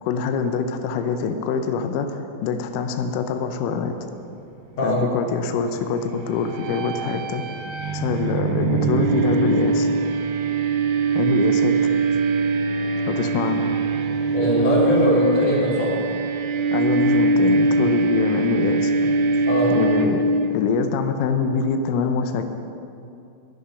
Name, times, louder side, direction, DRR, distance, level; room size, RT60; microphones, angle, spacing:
voice 1, 0.0-3.9 4.8-7.4 7.9-9.9 11.2-11.9 13.1-13.7 16.7-18.9 19.7-20.2 20.5-22.4, left 5 dB, 85° left, 7 dB, 1.9 m, -25 dB
sound 1, 6.4-20.5, right 3 dB, 70° right, 2.4 m, -22 dB
voice 2, 14.3-15.9 19.5-19.7, equal, 45° left, -4 dB, 3.3 m, -21 dB
12.5 x 10.5 x 5.6 m, 2.6 s
omnidirectional pair, 4.7 m